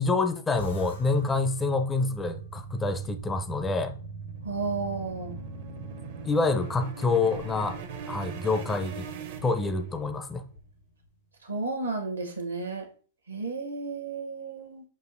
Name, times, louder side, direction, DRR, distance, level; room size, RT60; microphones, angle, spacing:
voice 1, 0.0-3.9 6.2-7.8 8.1-9.1 9.4-10.4, left 3 dB, 15° left, 0.4 m, -27 dB
sound 1, 0.6-11.2, right 2 dB, 75° left, 1.5 m, -44 dB
sound 2, 3.2-10.2, right 7 dB, 50° right, 0.6 m, -42 dB
voice 2, 4.4-5.4 11.4-12.9 13.3-14.8, right 3 dB, 80° right, 0.9 m, -33 dB
6.1 x 2.6 x 2.5 m
figure-of-eight pair, 105°, 0 cm